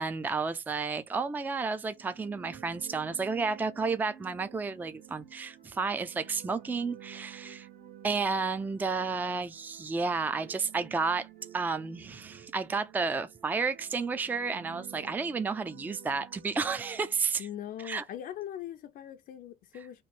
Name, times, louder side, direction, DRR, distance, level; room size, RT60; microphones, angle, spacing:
voice 1, 0.0-7.7 8.0-11.3 11.5-17.5 17.8-18.0, right 4 dB, 10° right, 0.4 m, -31 dB
sound 1, 1.9-17.6, right 10 dB, 60° right, 1.2 m, -51 dB
voice 2, 17.4-20.0, left 11 dB, 60° left, 0.5 m, -41 dB
3.0 x 2.5 x 4.3 m
cardioid pair, 110°, 17 cm